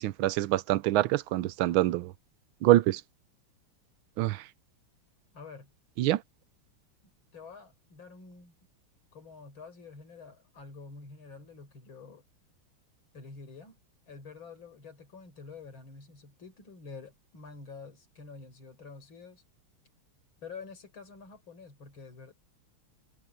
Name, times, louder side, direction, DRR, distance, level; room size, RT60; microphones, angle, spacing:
voice 1, 0.0-2.1 2.6-3.0 4.2-4.4 6.0-6.2, right 16 dB, 75° right, 1.4 m, -25 dB
voice 2, 5.3-5.7 7.3-8.5 9.1-12.2 13.1-13.8 14.1-19.4 20.4-22.3, left 4 dB, 65° left, 5.6 m, -48 dB
omnidirectional pair, 2.4 m